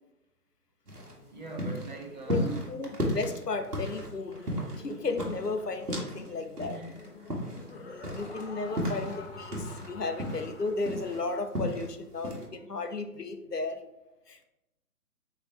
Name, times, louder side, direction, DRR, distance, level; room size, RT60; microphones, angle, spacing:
sound 1, 0.9-6.3 6.6-9.9 10.2-11.9 12.2-12.5, equal, 75° right, 1.9 m, -34 dB
Laughter, 1.0-11.4, left 3 dB, 40° left, 0.8 m, -50 dB
voice 1, 1.3-2.7 6.1-7.1 7.5-8.0, right 3 dB, 30° right, 1.2 m, -45 dB
voice 2, 2.3-4.4 4.7-6.8 7.8-13.8 14.3-14.5, left 3 dB, 85° left, 1.0 m, -34 dB
8.2 x 3.4 x 3.5 m
figure-of-eight pair, 145°, 46 cm